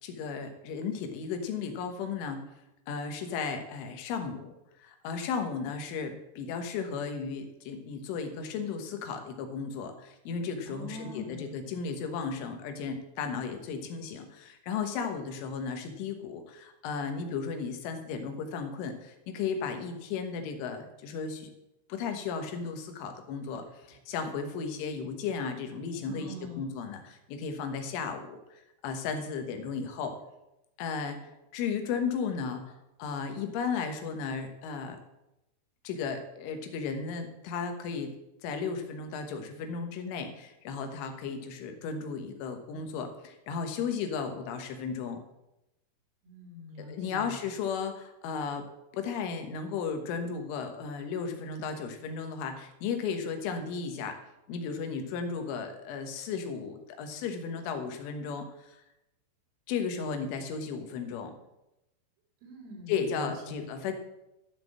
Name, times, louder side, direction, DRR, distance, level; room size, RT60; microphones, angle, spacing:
voice 1, 0.0-2.4 2.9-4.5 4.8-21.5 21.9-30.2 30.8-35.0 35.9-38.1 38.4-45.2 46.8-48.7 48.9-54.2 54.5-58.8 59.7-61.3 62.9-63.9, left 5 dB, 80° left, 6 dB, 3.7 m, -35 dB
voice 2, 10.7-11.6 26.1-26.7 46.2-47.3 62.4-63.6, left 1 dB, 90° right, 0 dB, 5.7 m, -43 dB
12.5 x 6.0 x 7.5 m, 0.89 s
omnidirectional pair, 5.5 m